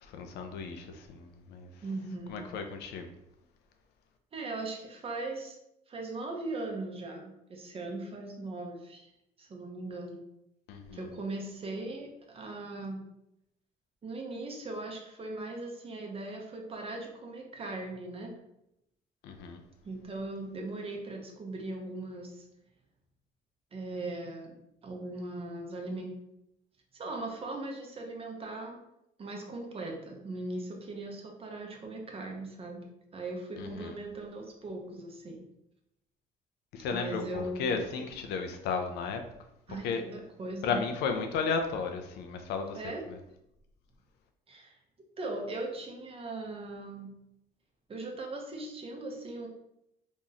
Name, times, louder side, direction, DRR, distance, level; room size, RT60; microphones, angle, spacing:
voice 1, 0.0-1.7 2.3-3.1 10.7-11.1 19.2-19.6 33.6-34.0 36.7-39.2 39.8-40.0 40.6-42.8 43.1-43.2, left 5 dB, 80° left, 5 dB, 0.6 m, -34 dB
voice 2, 1.8-2.5 4.3-5.6 5.9-9.1 9.4-10.2 10.9-13.0 14.0-18.3 19.8-22.4 23.7-24.6 24.8-26.1 26.9-28.8 29.2-32.8 33.1-35.5 36.9-37.8 39.7-40.8 42.7-43.1 44.5-44.8 45.2-47.1 47.9-49.5, right 2 dB, 35° right, 1 dB, 0.9 m, -39 dB
3.0 x 2.6 x 3.9 m, 0.81 s
cardioid pair, 110°, 17 cm